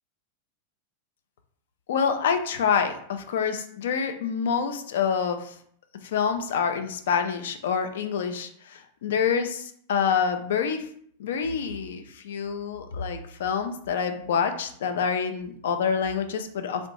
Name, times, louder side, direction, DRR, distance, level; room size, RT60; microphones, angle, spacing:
voice 1, 1.9-5.5 6.0-10.9 11.2-16.9, left 6 dB, 60° left, 7 dB, 0.4 m, -27 dB
3.1 x 2.5 x 3.0 m, 0.64 s
figure-of-eight pair, 90°, 0 cm